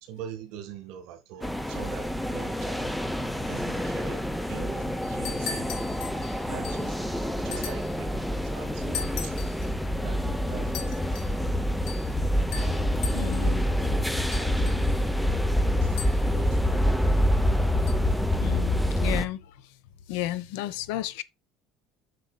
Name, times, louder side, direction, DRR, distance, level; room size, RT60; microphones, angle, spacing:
voice 1, 0.0-3.0 3.5-5.7 6.5-9.4 10.0-11.1 12.6-13.9 14.3-14.9 15.6-16.8, right 9 dB, 65° right, 1.4 m, -44 dB
sound 1, 1.4-19.3, left 1 dB, ahead, 0.6 m, -27 dB
sound 2, 5.0-7.0 7.5-8.0 8.9-9.7 10.7-11.4 11.9-12.2 12.5-13.5 14.3-15.0 16.0-16.4 17.9-18.0, left 7 dB, 70° left, 2.8 m, -39 dB
voice 2, 13.1-13.6 18.4-19.5 20.1-21.2, left 14 dB, 85° left, 0.9 m, -32 dB
7.9 x 6.8 x 2.2 m
cardioid pair, 160°, 0 cm